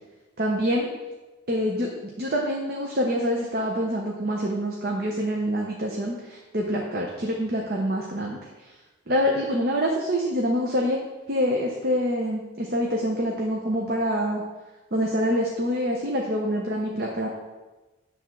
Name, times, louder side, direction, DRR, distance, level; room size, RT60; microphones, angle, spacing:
voice 1, 0.4-0.9 1.5-8.4 9.1-11.0 11.3-14.4 14.9-17.3, equal, 50° right, 0 dB, 0.8 m, -26 dB
9.4 x 3.5 x 6.1 m, 1.2 s
head